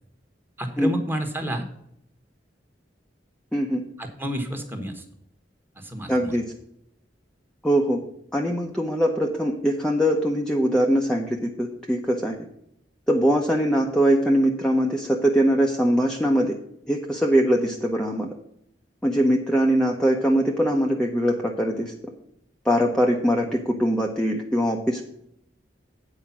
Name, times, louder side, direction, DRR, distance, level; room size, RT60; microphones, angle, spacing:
voice 1, 0.6-1.6 4.0-5.0 5.8-6.3, equal, 10° right, 4 dB, 1.3 m, -30 dB
voice 2, 3.5-3.8 6.1-6.5 7.6-8.0 8.3-12.3 13.1-16.5 16.9-18.3 19.0-21.9 22.6-25.0, equal, 5° left, 0 dB, 0.8 m, -22 dB
8.6 x 4.9 x 7.2 m, 0.74 s
head